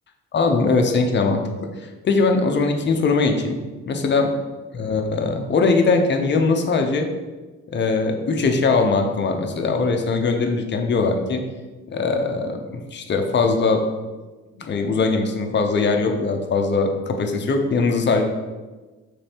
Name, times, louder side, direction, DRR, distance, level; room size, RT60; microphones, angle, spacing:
voice 1, 0.3-1.7 2.0-3.6 3.9-4.4 4.7-7.1 7.7-11.4 11.9-13.9 14.6-18.2, left 4 dB, 35° left, 4 dB, 0.6 m, -21 dB
5.1 x 3.3 x 2.9 m, 1.2 s
cardioid pair, 90°, 30 cm